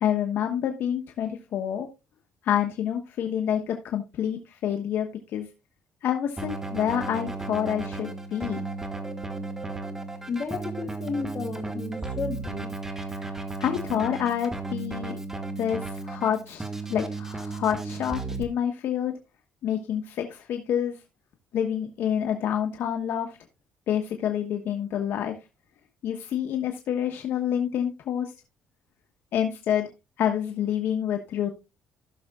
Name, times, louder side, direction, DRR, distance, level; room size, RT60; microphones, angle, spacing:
voice 1, 0.0-1.9 2.4-5.5 6.0-8.6 13.2-13.3 13.6-15.2 15.6-16.6 16.9-19.1 19.6-21.0 21.5-23.3 23.9-25.4 26.0-28.3 29.3-29.9 30.2-31.5, left 9 dB, 65° left, 1.2 m, -28 dB
Keyboard (musical), 6.4-18.4, right 3 dB, 10° right, 1.3 m, -35 dB
voice 2, 10.2-12.7, left 4 dB, 35° left, 2.3 m, -33 dB
15.5 x 6.4 x 2.4 m
cardioid pair, 125°, 4 cm